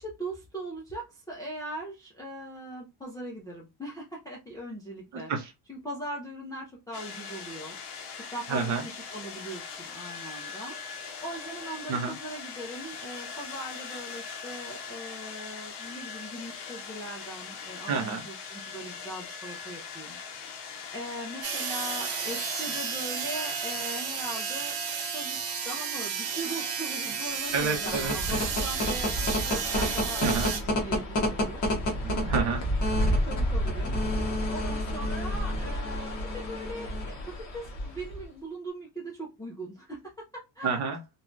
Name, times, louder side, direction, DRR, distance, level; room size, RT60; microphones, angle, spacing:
voice 1, 0.0-5.3 5.7-7.8 8.3-10.8 11.2-20.2 20.9-24.7 25.1-25.4 25.6-31.6 32.4-32.6 33.2-34.0 34.5-40.8, right 1 dB, 10° left, 0.3 m, -40 dB
voice 2, 5.1-5.5 8.5-8.8 11.9-12.1 17.9-18.2 27.5-28.5 29.7-30.5 32.0-33.2 40.6-41.0, right 5 dB, 40° right, 0.6 m, -30 dB
sound 1, 6.9-24.4, left 6 dB, 65° left, 0.7 m, -41 dB
sound 2, 21.4-30.6, right 6 dB, 80° right, 1.0 m, -32 dB
sound 3, 27.5-38.2, equal, 40° left, 1.0 m, -29 dB
3.1 x 2.2 x 2.5 m
cardioid pair, 160°, 44 cm